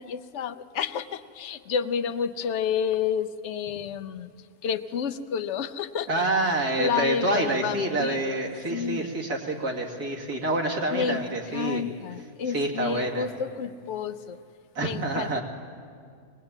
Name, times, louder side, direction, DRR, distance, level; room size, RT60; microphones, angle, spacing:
voice 1, 0.0-4.3 4.6-6.2 6.8-8.2 8.7-9.1 10.9-11.2 11.5-14.4 14.8-15.4, left 7 dB, 55° left, 10 dB, 0.9 m, -30 dB
voice 2, 6.1-11.8 12.5-13.3 14.7-15.4, right 2 dB, 75° right, -1 dB, 3.1 m, -27 dB
23.0 x 19.5 x 8.9 m, 2.2 s
omnidirectional pair, 1.6 m